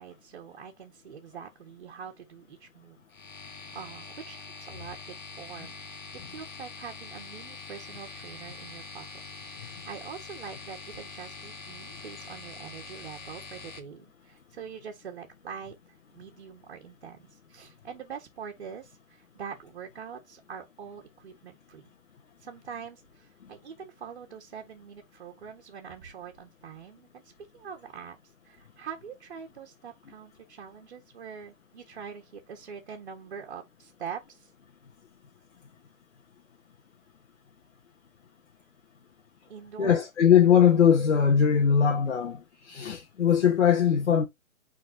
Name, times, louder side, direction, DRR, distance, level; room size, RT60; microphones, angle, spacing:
voice 1, 0.0-3.0 3.7-6.0 6.3-21.9 22.4-34.5 39.5-40.0, right 7 dB, 45° right, 1.6 m, -44 dB
sound 1, 3.1-13.8, left 4 dB, 35° left, 1.4 m, -44 dB
voice 2, 39.8-44.3, left 8 dB, 60° left, 1.4 m, -21 dB
9.3 x 4.0 x 2.7 m
hypercardioid pair, 165°, 40 cm